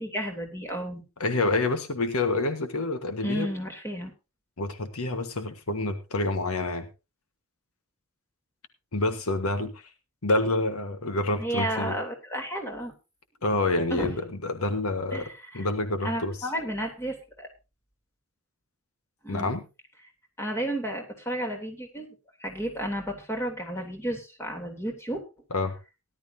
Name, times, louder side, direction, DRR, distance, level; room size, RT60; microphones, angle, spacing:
voice 1, 0.0-1.0 3.2-4.1 11.4-12.9 13.9-14.1 15.1-15.7 16.0-17.5 19.2-19.5 20.4-22.1 22.4-25.2, right 1 dB, 10° left, 2 dB, 3.2 m, -32 dB
voice 2, 1.2-3.5 4.6-6.8 8.9-9.7 10.2-11.9 13.4-16.3 19.3-19.6 25.5-25.7, left 2 dB, 80° left, 8 dB, 1.5 m, -27 dB
18.0 x 12.0 x 2.8 m, 0.28 s
head